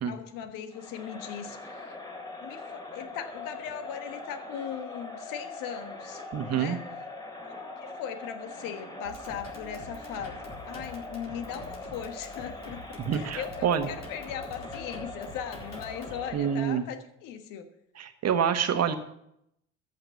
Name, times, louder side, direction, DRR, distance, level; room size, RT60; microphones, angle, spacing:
voice 1, 0.0-2.0 2.4-6.2 6.5-6.9 7.4-17.7, left 8 dB, 65° left, 8 dB, 1.4 m, -39 dB
Crowd, 0.7-16.9, left 2 dB, 10° left, 2.9 m, -42 dB
voice 2, 6.3-6.8 13.0-13.9 16.3-16.8 18.0-18.9, right 8 dB, 45° right, 9 dB, 1.5 m, -27 dB
sound 1, 9.0-16.3, left 1 dB, 45° left, 4.3 m, -46 dB
13.5 x 6.6 x 7.0 m, 0.78 s
hypercardioid pair, 55°, 35 cm